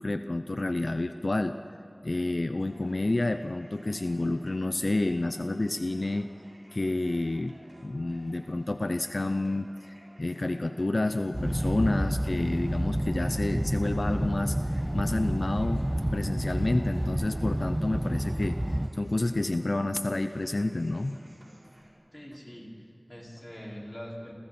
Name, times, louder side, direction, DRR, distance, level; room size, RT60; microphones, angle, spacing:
voice 1, 0.0-1.6 2.0-6.3 6.7-7.6 7.8-21.2, left 2 dB, 80° left, 8 dB, 0.6 m, -29 dB
sound 1, 2.6-21.9, right 1 dB, 70° right, 6.6 m, -56 dB
sound 2, 11.3-18.9, right 1 dB, 20° right, 0.7 m, -29 dB
voice 2, 22.1-24.3, equal, 25° left, -3 dB, 5.2 m, -43 dB
29.0 x 26.0 x 4.4 m, 2.6 s
wide cardioid pair, 45°, 0 cm